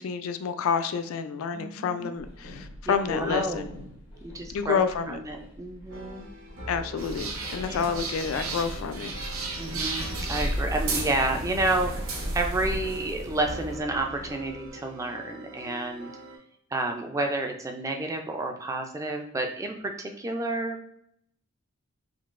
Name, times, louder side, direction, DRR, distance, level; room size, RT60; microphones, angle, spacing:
voice 1, 0.0-3.7 4.5-5.2 6.7-9.1, left 6 dB, 70° left, 10 dB, 0.3 m, -29 dB
voice 2, 1.5-2.2 2.9-3.7 4.2-6.3 7.6-7.8 9.6-11.9 12.3-16.1 16.7-20.8, right 2 dB, 15° right, 3 dB, 0.3 m, -30 dB
sound 1, 2.2-14.7, left 1 dB, 90° left, 1.0 m, -47 dB
sound 2, 5.9-16.4, equal, 55° right, 1.0 m, -44 dB
sound 3, 7.0-13.8, right 2 dB, 80° right, 0.7 m, -33 dB
3.7 x 2.7 x 2.5 m, 0.70 s
head